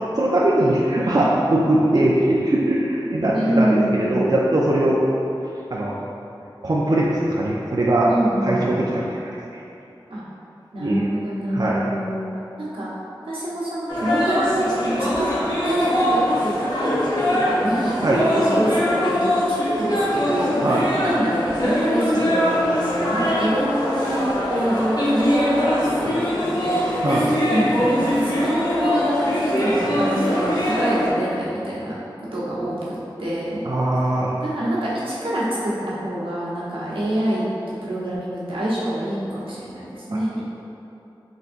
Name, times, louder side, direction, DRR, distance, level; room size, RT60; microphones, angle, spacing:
voice 1, 0.1-5.1 5.7-5.9 6.6-8.1 8.4-9.1 9.5-9.6 10.8-11.0 11.5-11.8 18.0-18.3 20.6-20.9 27.0-27.3 33.6-34.3, right 1 dB, 45° right, -5 dB, 0.4 m, -20 dB
voice 2, 3.3-4.4 8.1-8.8 10.1-10.2 10.7-12.3 12.6-12.9 13.2-15.3 15.6-18.1 18.3-33.6 34.4-37.5 37.8-40.4, right 1 dB, 85° right, -8 dB, 0.9 m, -26 dB
sound 1, 13.9-31.1, equal, 50° left, 0.8 m, -22 dB
4.0 x 3.5 x 2.5 m, 2.8 s
wide cardioid pair, 50°, 9 cm